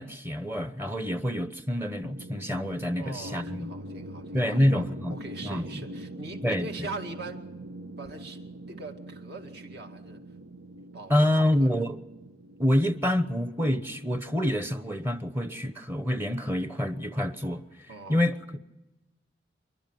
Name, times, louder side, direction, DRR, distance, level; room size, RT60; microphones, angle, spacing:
voice 1, 0.0-3.7 4.3-5.2 5.4-5.6 6.4-6.9 11.1-12.0 12.6-17.6 18.1-18.6, left 1 dB, 10° right, 0.9 m, -27 dB
sound 1, 2.0-14.2, right 1 dB, 90° right, 1.0 m, -43 dB
voice 2, 3.0-7.4 8.0-8.4 8.7-10.2 10.9-11.8 17.9-18.2, right 2 dB, 60° right, 2.3 m, -42 dB
28.0 x 11.5 x 9.2 m
head